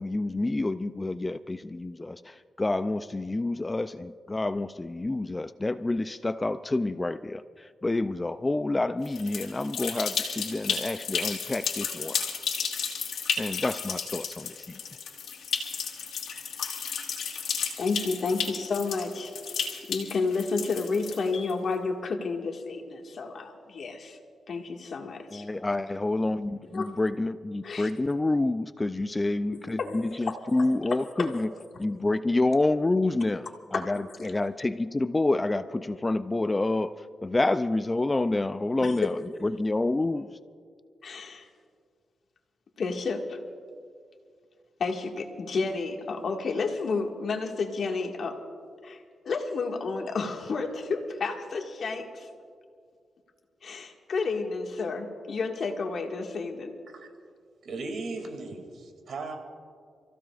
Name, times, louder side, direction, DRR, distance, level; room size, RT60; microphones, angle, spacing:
voice 1, 0.0-12.2 13.4-14.8 25.3-31.5 31.8-40.4, left 2 dB, 20° left, 12 dB, 0.4 m, -28 dB
sound 1, 9.0-21.5, left 6 dB, 85° left, 2.4 m, -33 dB
voice 2, 17.8-19.3 19.9-24.2 24.5-25.5 26.7-26.8 27.6-27.9 29.8-30.3 31.2-31.3 33.7-33.8 38.8-38.9 41.0-41.5 42.8-43.4 44.8-48.4 48.8-52.3 53.6-56.7, left 4 dB, 65° left, 2 dB, 1.8 m, -31 dB
voice 3, 57.6-59.4, right 3 dB, 75° right, 4 dB, 2.5 m, -37 dB
30.0 x 15.5 x 2.5 m, 2.2 s
cardioid pair, 80°, 0 cm